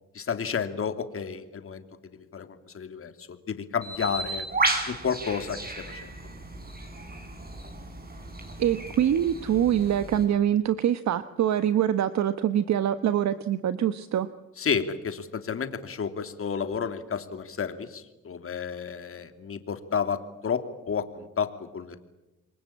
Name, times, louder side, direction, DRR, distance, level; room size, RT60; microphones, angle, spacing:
voice 1, 0.1-1.8 2.1-2.5 2.7-4.5 4.9-5.6 5.9-6.1 14.6-22.0, left 6 dB, 45° left, 8 dB, 2.9 m, -31 dB
Bird, 3.8-10.2, right 2 dB, 30° right, 6.7 m, -33 dB
voice 2, 8.6-14.3, right 10 dB, 65° right, 11 dB, 1.2 m, -24 dB
28.0 x 23.5 x 8.7 m, 1.0 s
cardioid pair, 90°, 30 cm